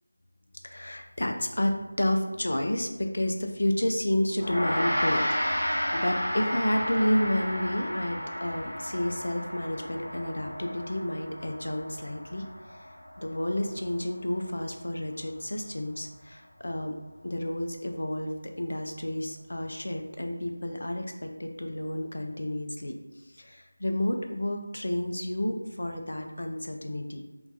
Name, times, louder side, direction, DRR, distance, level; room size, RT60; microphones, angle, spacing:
voice 1, 0.6-1.7 2.0-12.9 13.2-16.9 17.2-18.3 18.6-22.9 23.2-27.2, left 1 dB, 60° left, 4 dB, 0.3 m, -30 dB
Gong, 4.4-13.9, equal, 25° left, 1.0 m, -32 dB
2.2 x 2.2 x 2.6 m, 1.1 s
figure-of-eight pair, 170°, 0 cm